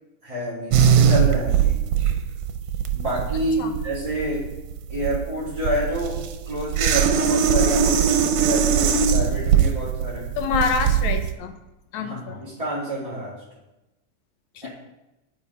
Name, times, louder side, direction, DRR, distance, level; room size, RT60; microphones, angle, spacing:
voice 1, 0.2-1.7 2.9-4.5 4.9-10.3 12.0-13.4 14.6-14.7, equal, 10° right, -8 dB, 2.9 m, -28 dB
sound 1, 0.7-11.3, right 8 dB, 85° right, 2.4 m, -20 dB
voice 2, 10.4-11.5 11.9-12.4, left 6 dB, 70° left, 7 dB, 2.3 m, -26 dB
9.9 x 9.8 x 5.1 m, 0.97 s
omnidirectional pair, 3.6 m